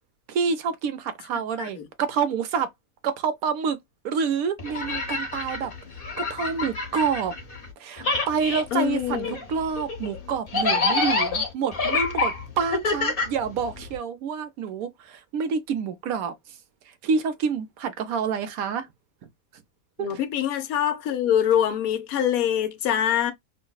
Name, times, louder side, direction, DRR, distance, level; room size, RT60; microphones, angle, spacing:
voice 1, 0.3-2.7 3.0-3.8 4.0-5.7 6.2-7.3 7.8-16.6 16.9-18.9 20.0-20.2, right 6 dB, 90° right, 1.1 m, -28 dB
sound 1, 4.6-7.7 8.0-14.0, left 3 dB, 45° left, 1.1 m, -27 dB
voice 2, 8.7-9.4 20.0-23.3, left 10 dB, 90° left, 1.1 m, -24 dB
5.6 x 2.0 x 2.3 m
omnidirectional pair, 1.5 m